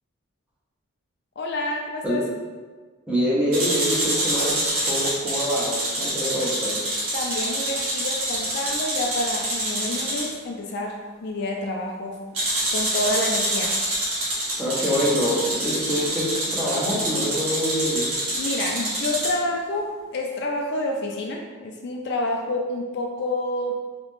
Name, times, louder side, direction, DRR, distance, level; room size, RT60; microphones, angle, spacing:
voice 1, 1.4-2.3 5.0-5.1 7.1-12.2 12.7-13.7 18.4-23.7, left 1 dB, 50° left, 1 dB, 0.4 m, -28 dB
voice 2, 3.1-4.6 4.9-6.8 14.6-18.1, equal, 5° right, -8 dB, 0.9 m, -25 dB
sound 1, 3.5-10.3 12.3-19.3, right 1 dB, 80° right, 1.4 m, -26 dB
3.8 x 3.0 x 3.3 m, 1.4 s
head